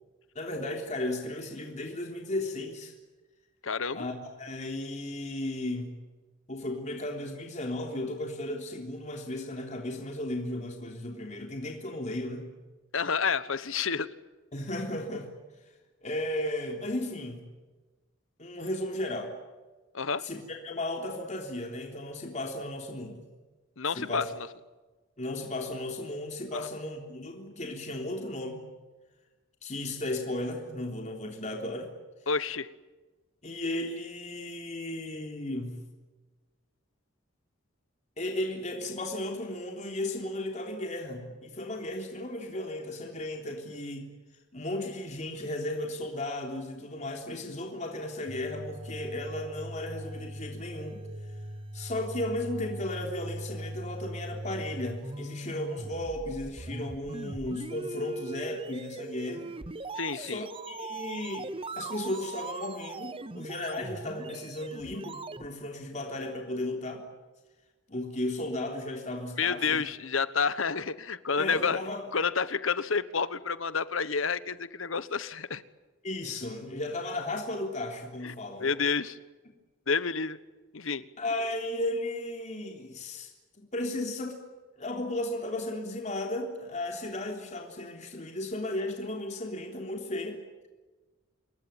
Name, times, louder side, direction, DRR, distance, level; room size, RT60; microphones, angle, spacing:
voice 1, 0.4-2.9 3.9-5.9 6.5-12.5 14.5-15.3 16.0-17.5 18.4-19.3 20.2-23.3 24.0-24.3 25.2-28.6 29.6-31.9 33.4-35.8 38.2-44.1 44.5-51.0 51.7-59.5 60.1-61.5 61.8-67.0 67.9-69.8 71.4-72.0 76.0-78.7 81.2-83.3 83.6-84.4 84.8-90.4, left 1 dB, 35° left, 2 dB, 3.6 m, -35 dB
voice 2, 3.6-4.0 12.9-14.1 19.9-20.2 23.8-24.5 26.5-26.7 32.3-32.7 60.0-60.4 69.4-71.8 72.1-75.6 78.2-79.2 79.9-80.4 80.7-81.0, left 5 dB, 90° left, 14 dB, 1.3 m, -29 dB
sound 1, 48.3-65.5, right 2 dB, 25° right, 0.8 m, -40 dB
27.5 x 21.5 x 9.1 m, 1.2 s
head